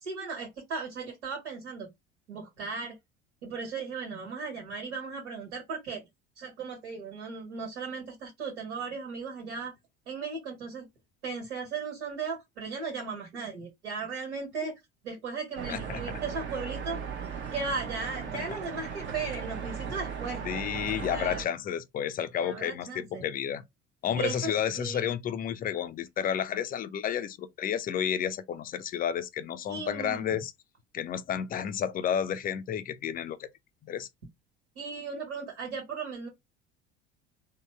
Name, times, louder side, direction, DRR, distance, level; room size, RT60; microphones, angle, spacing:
voice 1, 0.0-1.9 2.3-2.9 3.4-6.1 6.4-9.7 10.0-10.9 11.2-14.7 15.0-17.0 17.5-20.5 21.1-21.4 22.4-23.2 24.1-25.1 29.7-30.2 34.7-36.3, right 4 dB, 70° right, 1.5 m, -36 dB
sound 1, 15.6-21.5, right 7 dB, 35° right, 0.8 m, -37 dB
voice 2, 15.7-16.2 18.3-18.4 20.4-23.6 24.0-30.5 30.9-33.5 33.8-34.1, left 9 dB, 25° left, 0.5 m, -31 dB
3.8 x 2.2 x 3.2 m
figure-of-eight pair, 65°, 34 cm